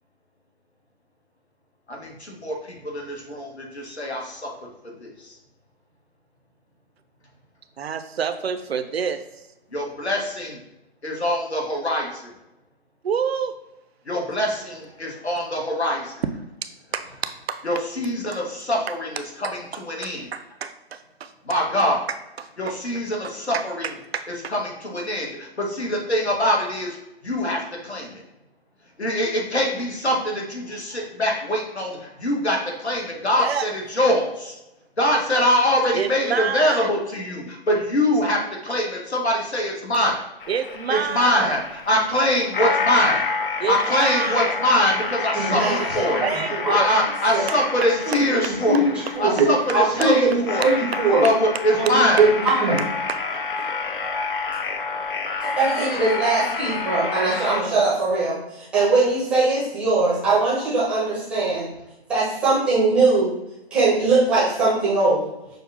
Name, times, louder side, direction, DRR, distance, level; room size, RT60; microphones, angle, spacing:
voice 1, 1.9-4.5 4.8-5.3 9.7-10.5 11.0-12.3 14.1-16.2 17.6-20.3 21.4-22.0 22.6-23.9 24.3-27.0 27.2-28.2 29.0-34.6 35.0-40.2 40.9-43.2 43.7-48.9 49.2-50.7 51.2-52.2, left 1 dB, 90° left, -1 dB, 1.2 m, -23 dB
voice 2, 7.8-9.2 13.0-13.5 16.9-17.0 17.5-17.6 19.4-19.5 20.0-21.3 22.4-22.5 23.5-23.6 24.1-24.3 33.4-33.7 35.9-36.9 40.5-41.6 43.6-44.6 46.2-46.9 53.1-53.2, right 7 dB, 70° right, 9 dB, 0.5 m, -27 dB
sound 1, 40.4-57.6, left 4 dB, 55° left, 0.6 m, -29 dB
voice 3, 45.3-46.7 47.3-47.5 48.1-49.5 49.7-51.2 51.7-52.8 55.4-61.7 62.1-63.3 63.7-65.3, right 3 dB, 5° right, -7 dB, 0.5 m, -21 dB
6.3 x 2.2 x 2.5 m, 0.92 s
figure-of-eight pair, 135°, 32 cm